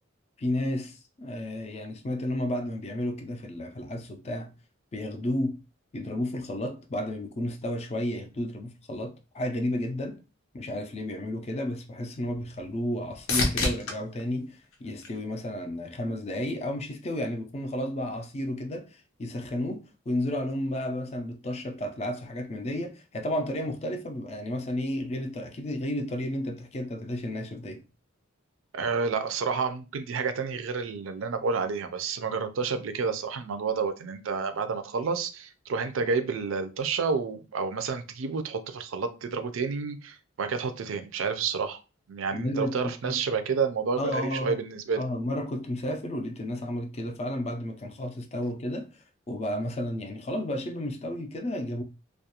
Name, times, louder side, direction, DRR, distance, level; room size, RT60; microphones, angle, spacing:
voice 1, 0.4-4.5 4.9-5.6 5.9-10.2 10.5-27.8 42.3-43.2 44.0-44.6 44.9-48.9 49.3-51.8, left 1 dB, 30° left, 0.4 m, -32 dB
sound 1, 11.5-15.8 16.3-16.9 24.7-24.8, left 2 dB, 85° left, 0.6 m, -33 dB
voice 2, 28.7-41.8 42.1-45.0, right 5 dB, 75° right, 0.4 m, -30 dB
2.3 x 2.1 x 2.8 m
head